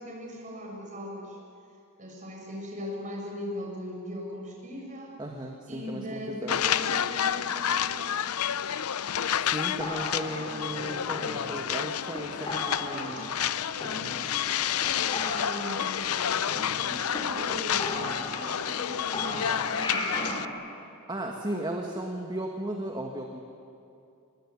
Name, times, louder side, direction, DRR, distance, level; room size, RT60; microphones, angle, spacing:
voice 1, 0.0-1.4 2.0-5.2 5.7-8.3 12.8-16.1 16.8-20.2, equal, 35° right, 0 dB, 6.6 m, -39 dB
voice 2, 5.2-6.6 9.4-13.3 21.1-23.4, right 1 dB, 20° right, 1 dB, 1.7 m, -35 dB
sound 1, 6.5-20.5, left 9 dB, 85° left, 0.6 m, -30 dB
sound 2, 9.8-11.7 12.1-12.2 12.5-13.5 13.8-14.5 14.8-14.9 15.1-17.2 17.5-17.6 17.8-18.8 19.1-20.5, left 1 dB, 25° left, 4.8 m, -36 dB
24.0 x 22.0 x 9.7 m, 2.6 s
head